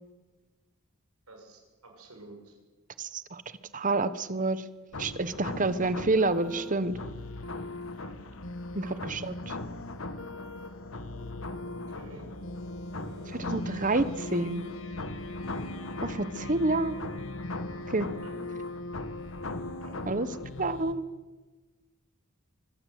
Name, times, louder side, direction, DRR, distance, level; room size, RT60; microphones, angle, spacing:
voice 1, 1.3-2.6 8.0-8.1 8.8-9.0 11.6-12.3 13.0-13.5 18.2-18.6 19.8-20.0, right 2 dB, 85° right, 3 dB, 6.5 m, -50 dB
voice 2, 3.0-3.4 3.7-4.6 5.0-7.0 8.7-9.5 13.5-14.6 16.0-17.0 17.9-18.1 20.1-20.3 20.6-21.0, right 2 dB, 40° right, 14 dB, 1.1 m, -28 dB
sound 1, 4.9-20.9, left 2 dB, 65° left, 1.6 m, -38 dB
24.5 x 15.5 x 9.5 m, 1.3 s
head